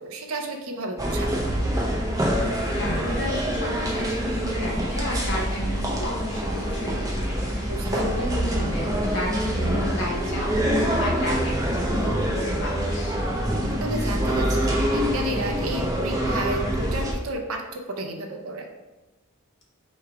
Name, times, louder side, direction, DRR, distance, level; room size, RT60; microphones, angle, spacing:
voice 1, 0.0-1.3 7.7-8.1 13.8-18.7, right 2 dB, 65° right, 3 dB, 0.6 m, -32 dB
sound 1, 1.0-17.1, equal, 15° right, 0.6 m, -25 dB
voice 2, 2.7-13.2, equal, 50° left, -3 dB, 1.2 m, -32 dB
3.5 x 3.2 x 4.7 m, 1.1 s
head